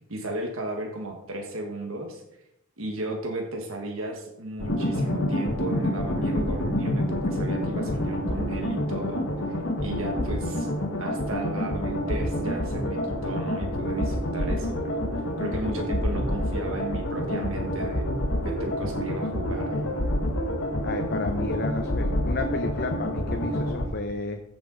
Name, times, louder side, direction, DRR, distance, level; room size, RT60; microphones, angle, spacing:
voice 1, 0.1-2.2 2.8-10.7 11.0-15.0 15.4-18.1 18.4-20.0, right 2 dB, 75° right, 2 dB, 1.5 m, -35 dB
sound 1, 4.6-23.9, left 1 dB, 70° left, 1.5 m, -28 dB
voice 2, 20.8-24.4, left 3 dB, 45° left, 5 dB, 0.8 m, -32 dB
15.0 x 6.9 x 3.9 m, 0.84 s
head